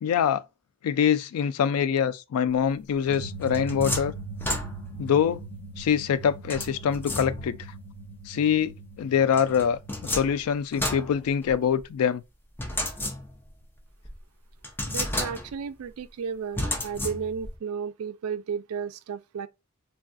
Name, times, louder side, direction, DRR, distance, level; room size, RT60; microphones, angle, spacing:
voice 1, 0.0-0.4 0.8-4.1 5.0-5.4 5.8-7.6 8.3-8.7 9.0-12.2, left 8 dB, 85° left, 0.3 m, -24 dB
sound 1, 3.1-10.3, right 3 dB, 30° left, 1.2 m, -40 dB
sound 2, 3.1-5.1 6.5-7.7 9.3-11.8 12.6-13.6 14.0-14.1 14.6-15.7 16.6-17.6, left 1 dB, 10° left, 0.5 m, -32 dB
voice 2, 14.9-19.5, right 6 dB, 80° right, 0.3 m, -33 dB
3.3 x 2.3 x 2.4 m
head